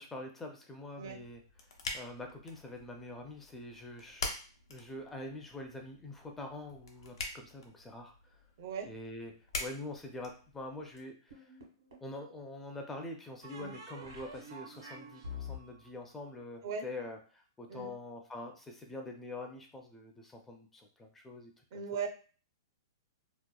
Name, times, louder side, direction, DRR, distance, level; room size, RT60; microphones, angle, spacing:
voice 1, 0.0-1.4 1.9-4.4 4.7-8.4 8.8-9.3 9.6-11.5 12.0-21.8, left 2 dB, 10° left, 2 dB, 0.4 m, -45 dB
sound 1, 1.0-11.0, left 3 dB, 85° left, 0.6 m, -45 dB
voice 2, 8.6-8.9 13.5-13.7 16.6-16.9 17.7-17.9 21.7-22.1, right 6 dB, 55° right, 6 dB, 0.5 m, -38 dB
sound 2, 11.3-12.1 13.4-17.1, left 3 dB, 80° right, 1.2 m, -47 dB
2.8 x 2.1 x 2.2 m, 0.38 s
hypercardioid pair, 145°, 2 cm